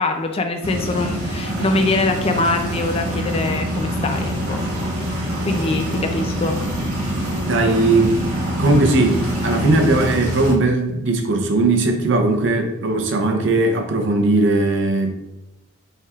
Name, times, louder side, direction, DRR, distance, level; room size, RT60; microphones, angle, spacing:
voice 1, 0.0-4.6 5.4-6.6, left 3 dB, 25° left, 5 dB, 0.3 m, -23 dB
sound 1, 0.6-10.5, equal, 75° right, 1.4 m, -24 dB
voice 2, 7.4-8.2 8.6-15.1, right 2 dB, 55° right, 5 dB, 0.6 m, -18 dB
5.4 x 3.4 x 2.4 m, 0.97 s
head